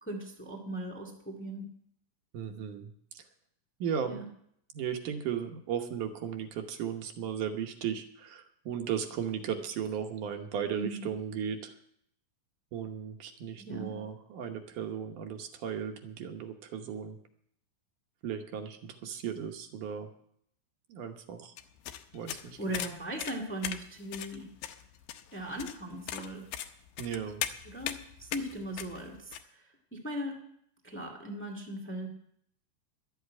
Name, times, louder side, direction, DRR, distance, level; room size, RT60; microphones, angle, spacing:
voice 1, 0.0-1.7 4.0-4.3 10.7-11.1 13.6-14.0 22.6-24.5 25.3-26.5 27.6-30.4 30.8-32.1, right 1 dB, 5° left, 0 dB, 0.9 m, -39 dB
voice 2, 2.3-3.2 3.8-4.2 4.7-11.7 12.7-17.2 18.2-20.1 20.9-21.5 22.1-22.6 27.0-27.5, right 8 dB, 70° right, 5 dB, 2.5 m, -36 dB
sound 1, 21.6-29.4, left 11 dB, 90° left, 2.5 m, -39 dB
11.5 x 8.2 x 8.4 m, 0.69 s
omnidirectional pair, 3.9 m